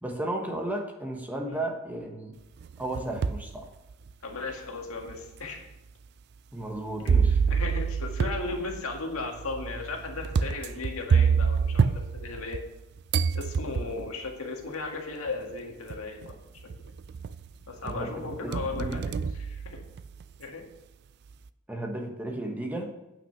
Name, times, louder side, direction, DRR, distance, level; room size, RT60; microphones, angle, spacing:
voice 1, 0.0-2.3 2.8-3.7 6.5-7.4 17.8-19.1 21.7-22.9, right 1 dB, 10° right, 1 dB, 1.1 m, -34 dB
sound 1, 2.6-3.5 4.1-4.2 5.1-5.2 7.1-12.8 13.1-14.1 15.3-15.4 15.9-16.3 16.7-17.5 17.9-20.2, right 6 dB, 50° right, 0.3 m, -27 dB
voice 2, 4.2-5.7 7.0-7.2 7.5-12.6 13.3-16.4 17.7-19.8 20.4-20.7, left 3 dB, 80° left, 2 dB, 1.8 m, -36 dB
8.9 x 5.9 x 5.8 m, 0.99 s
head